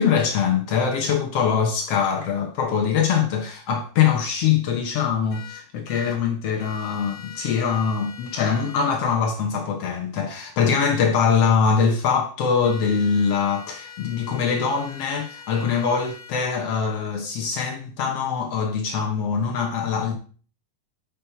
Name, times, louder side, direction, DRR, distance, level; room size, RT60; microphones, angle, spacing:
voice 1, 0.0-20.2, left 6 dB, 75° left, 1.4 m, -23 dB
sound 1, 5.3-6.2 6.6-8.9 12.6-16.3, left 7 dB, 55° left, 2.3 m, -42 dB
7.0 x 5.2 x 4.4 m
omnidirectional pair, 4.1 m